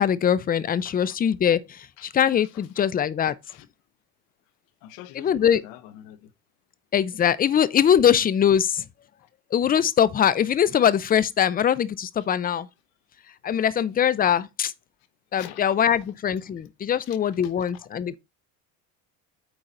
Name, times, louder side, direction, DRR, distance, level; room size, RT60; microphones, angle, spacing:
voice 1, 0.0-3.3 5.1-5.6 6.9-8.8 9.5-12.7 13.4-14.7 15.3-18.2, left 9 dB, 25° left, 0.5 m, -22 dB
voice 2, 2.5-2.8 3.5-3.7 4.8-6.3 9.2-9.3 13.5-13.6 15.3-15.6 17.1-17.2, left 13 dB, 80° left, 1.0 m, -44 dB
8.9 x 4.0 x 4.3 m
cardioid pair, 125°, 38 cm